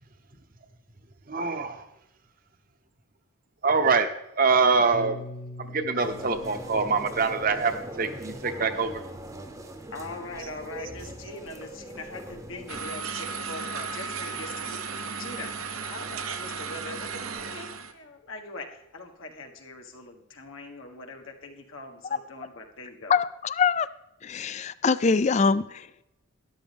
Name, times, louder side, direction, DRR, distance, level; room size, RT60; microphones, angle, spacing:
voice 1, 1.3-1.8 3.6-4.1 4.4-5.2 5.6-9.0, right 4 dB, 40° right, 9 dB, 0.8 m, -24 dB
Piano, 4.9-9.4, left 1 dB, 55° left, 0.7 m, -45 dB
sound 1, 6.0-12.8, right 1 dB, 15° right, 0.8 m, -41 dB
voice 2, 9.9-23.1, left 2 dB, 75° left, 3 dB, 1.5 m, -42 dB
sound 2, 12.7-17.9, right 5 dB, 85° right, 1.0 m, -35 dB
voice 3, 23.1-23.9 24.2-26.0, left 5 dB, 35° left, 16 dB, 0.3 m, -24 dB
12.5 x 11.0 x 3.5 m, 0.89 s
head